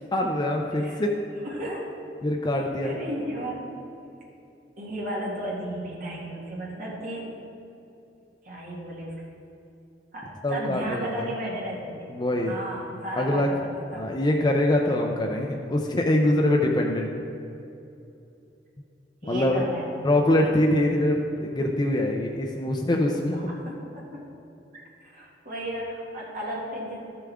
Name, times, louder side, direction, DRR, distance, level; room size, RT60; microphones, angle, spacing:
voice 1, 0.1-1.1 2.2-2.9 10.4-11.3 12.1-12.6 13.1-13.5 13.9-17.1 19.3-19.6 20.0-23.4, left 1 dB, 25° left, 1 dB, 0.5 m, -24 dB
voice 2, 1.4-1.9 2.8-3.7 4.8-7.3 8.4-9.1 10.1-12.1 12.4-14.2 19.2-19.9 20.3-20.5 23.2-24.2 24.7-27.0, right 1 dB, 50° right, -4 dB, 2.3 m, -34 dB
13.5 x 6.9 x 3.6 m, 2.8 s
head